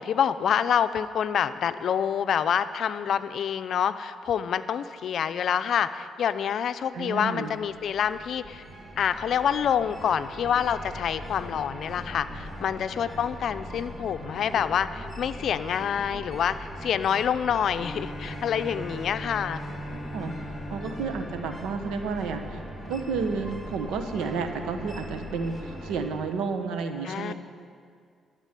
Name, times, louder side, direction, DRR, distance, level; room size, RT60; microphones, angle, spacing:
voice 1, 0.0-8.6 9.0-19.6 27.0-27.3, left 8 dB, 65° left, 12 dB, 0.6 m, -27 dB
voice 2, 6.9-7.5 19.9-20.3 20.7-27.3, right 5 dB, 90° right, 6 dB, 1.2 m, -31 dB
sound 1, 7.2-26.1, equal, 20° right, 2.5 m, -40 dB
Bowed string instrument, 17.7-22.5, equal, 15° left, 0.9 m, -41 dB
13.0 x 8.2 x 9.9 m, 2.2 s
cardioid pair, 90°, 0 cm